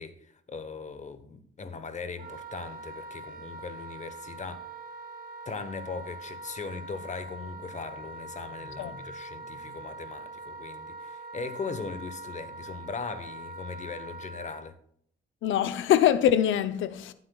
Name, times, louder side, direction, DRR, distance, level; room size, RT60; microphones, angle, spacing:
voice 1, 0.0-4.7 5.4-14.7, left 4 dB, 35° left, 1.1 m, -39 dB
Wind instrument woodwind instrument, 2.2-14.6, right 2 dB, 45° right, 1.4 m, -43 dB
voice 2, 15.4-17.1, left 10 dB, 75° left, 0.7 m, -23 dB
14.5 x 7.9 x 2.3 m
cardioid pair, 90°, 20 cm